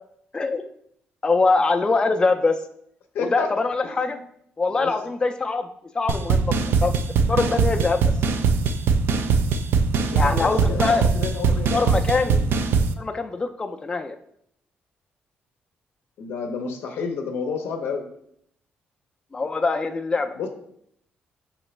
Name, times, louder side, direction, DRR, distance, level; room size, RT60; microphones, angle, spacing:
voice 1, 1.2-2.6 3.2-4.2 4.6-5.7 5.9-6.5 6.8-6.9 7.3-8.0 10.1-11.0 11.7-12.4 13.0-14.2 19.3-20.3, left 3 dB, 20° left, 6 dB, 0.3 m, -23 dB
voice 2, 3.1-3.5 3.8-4.2 4.7-4.9 10.1-11.9 12.2-12.5 16.2-18.1 20.4-20.5, left 5 dB, 85° left, 3 dB, 0.6 m, -31 dB
sound 1, 6.1-12.9, right 5 dB, 75° right, 0.3 m, -21 dB
4.9 x 3.1 x 3.1 m, 0.70 s
cardioid pair, 90°, 4 cm